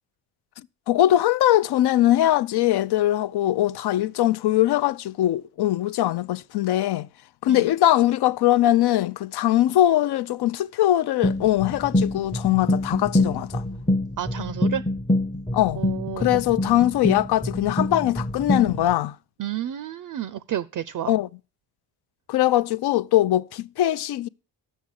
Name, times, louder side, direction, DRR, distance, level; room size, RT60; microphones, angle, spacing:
voice 1, 0.9-7.1 7.4-13.6 15.5-15.8 16.2-19.2 21.1-21.3 22.3-24.3, left 13 dB, 60° left, 0.5 m, -21 dB
sound 1, 11.2-18.9, left 1 dB, 10° left, 0.7 m, -26 dB
voice 2, 14.2-14.8 15.8-16.4 19.4-21.1, right 11 dB, 50° right, 0.5 m, -31 dB
7.1 x 6.2 x 6.4 m
supercardioid pair, 55°, 44 cm